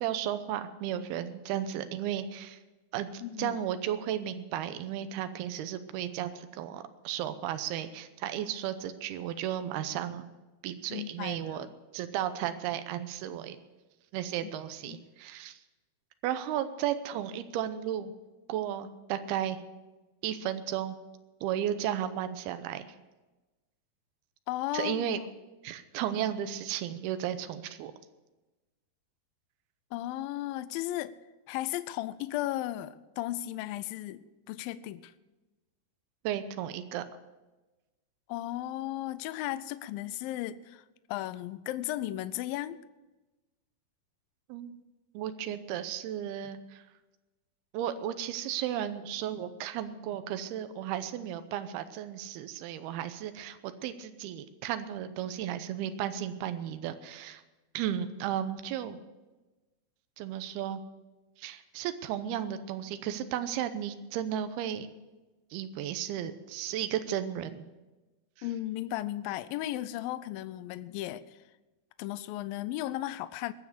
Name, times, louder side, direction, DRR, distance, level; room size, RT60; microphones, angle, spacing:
voice 1, 0.0-2.6 2.9-10.2 10.6-11.7 11.9-13.6 14.1-15.6 16.2-18.1 18.5-19.6 20.2-21.0 21.4-22.9 24.7-25.2 25.6-27.9 36.2-37.0 44.5-44.8 45.1-46.8 47.7-57.4 57.7-59.0 60.2-60.8 61.4-64.9 65.5-67.6, right 10 dB, 85° right, 10 dB, 2.7 m, -34 dB
voice 2, 3.2-3.6 10.9-11.7 14.4-14.5 14.9-15.0 24.5-25.3 29.9-31.1 31.5-35.1 38.3-40.8 41.1-42.8 68.4-71.4 72.0-73.5, left 14 dB, 80° left, 14 dB, 2.2 m, -35 dB
21.5 x 7.2 x 6.7 m, 1.1 s
omnidirectional pair, 4.5 m